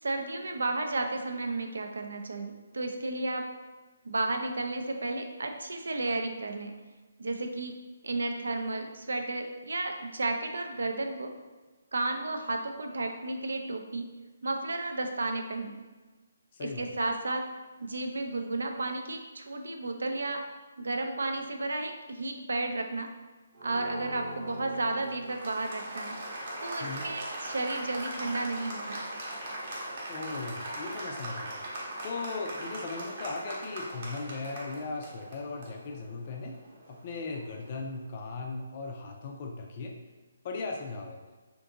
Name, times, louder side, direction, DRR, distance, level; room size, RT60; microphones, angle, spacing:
voice 1, 0.0-3.5 4.0-6.7 7.2-7.7 8.0-11.3 11.9-14.1 14.4-15.8 16.6-17.4 17.8-20.4 20.8-23.1 23.6-26.2 26.6-29.0, right 2 dB, 85° right, 4 dB, 0.4 m, -33 dB
voice 2, 16.5-16.9 26.8-27.1 30.1-31.6 32.0-36.6 36.9-39.9 40.4-41.2, left 3 dB, 35° left, 1 dB, 0.3 m, -38 dB
Applause, 23.5-37.9, right 1 dB, 45° right, 0.8 m, -40 dB
2.6 x 2.6 x 3.7 m, 1.3 s
hypercardioid pair, 160°, 0 cm